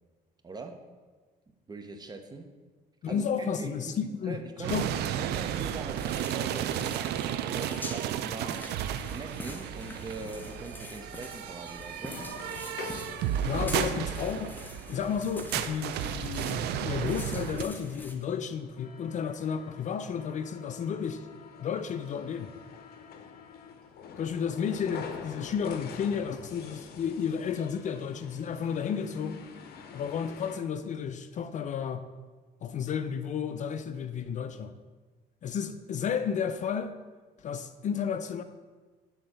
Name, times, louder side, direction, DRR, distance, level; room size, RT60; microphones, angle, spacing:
voice 1, 0.4-0.7 1.7-2.5 3.1-8.6 9.1-12.2, right 3 dB, 25° right, 5 dB, 0.9 m, -42 dB
voice 2, 3.0-4.4 4.7-4.9 13.4-14.6 14.9-21.2 21.6-22.5 24.2-29.4 29.9-32.0 32.6-34.7 35.4-36.9 37.4-38.4, left 7 dB, 45° left, 10 dB, 0.5 m, -32 dB
sound 1, 4.6-17.6, right 10 dB, 75° right, 0.5 m, -33 dB
sound 2, 5.9-18.1, left 1 dB, 10° left, 0.9 m, -46 dB
sound 3, 11.9-30.6, left 6 dB, 65° left, 0.8 m, -47 dB
9.2 x 3.8 x 6.5 m, 1.4 s
cardioid pair, 110°, 17 cm